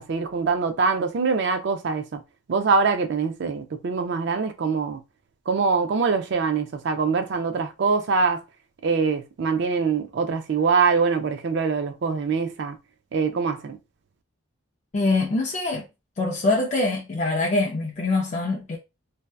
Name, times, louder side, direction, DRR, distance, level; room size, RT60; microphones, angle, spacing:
voice 1, 0.0-2.2 2.5-5.0 5.5-8.4 8.8-12.8 13.1-13.8, right 5 dB, 50° right, 0.3 m, -23 dB
voice 2, 14.9-15.9 16.2-18.8, left 2 dB, 30° left, 0.3 m, -24 dB
2.7 x 2.2 x 2.2 m
head